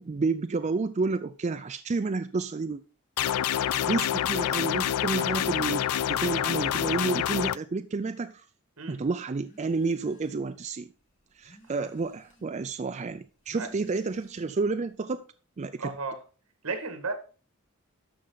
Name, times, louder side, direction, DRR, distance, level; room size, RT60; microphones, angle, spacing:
voice 1, 0.0-2.8 3.8-8.4 8.9-10.9 11.4-15.2 15.6-15.9, right 4 dB, 30° right, 0.4 m, -30 dB
sound 1, 3.2-7.6, left 10 dB, 90° left, 0.4 m, -27 dB
Telephone, 9.4-10.6 11.0-12.7 13.3-14.8, equal, 35° left, 3.4 m, -56 dB
voice 2, 15.8-16.2 16.6-17.1, right 3 dB, 75° right, 2.0 m, -33 dB
13.0 x 5.6 x 4.0 m
head